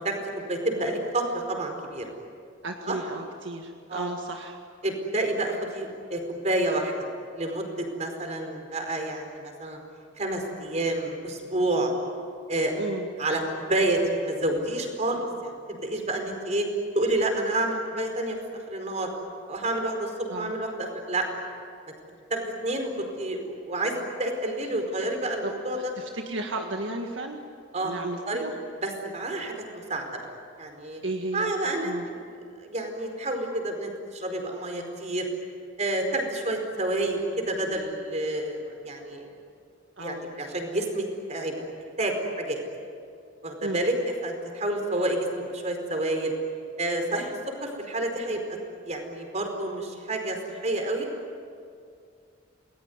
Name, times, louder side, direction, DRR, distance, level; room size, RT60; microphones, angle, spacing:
voice 1, 0.0-2.1 2.9-3.0 3.9-4.1 4.8-6.9 7.3-9.8 10.2-11.9 12.5-12.8 13.2-16.7 16.9-18.4 18.7-19.1 19.5-21.3 22.3-22.9 23.2-25.9 27.7-28.0 28.3-28.4 28.8-30.1 30.6-31.0 31.3-32.2 32.6-35.3 35.8-39.3 40.0-42.6 43.4-43.9 44.2-46.3 46.8-47.3 47.6-48.4 48.8-50.4 50.6-51.1, right 1 dB, 35° right, 4 dB, 4.7 m, -29 dB
voice 2, 2.6-4.6 12.7-13.1 20.3-20.5 25.4-27.4 27.8-28.5 31.0-31.5 31.8-32.1 40.0-40.3 43.6-43.8, right 2 dB, 75° right, 3 dB, 1.8 m, -34 dB
28.5 x 20.5 x 9.7 m, 2.3 s
head